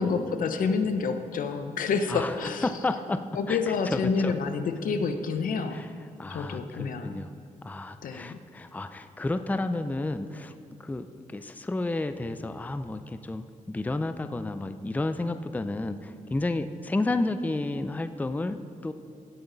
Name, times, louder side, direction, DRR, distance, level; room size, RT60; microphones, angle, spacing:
voice 1, 0.0-2.7 3.3-5.8 6.3-7.2 8.0-8.4, left 5 dB, 80° left, 8 dB, 0.8 m, -28 dB
voice 2, 2.6-3.2 3.5-4.3 5.7-5.9 6.2-7.3 7.6-10.5 10.8-18.6 18.8-18.9, left 2 dB, 10° left, 10 dB, 0.4 m, -31 dB
17.0 x 8.4 x 4.0 m, 2.3 s
cardioid pair, 100°, 14 cm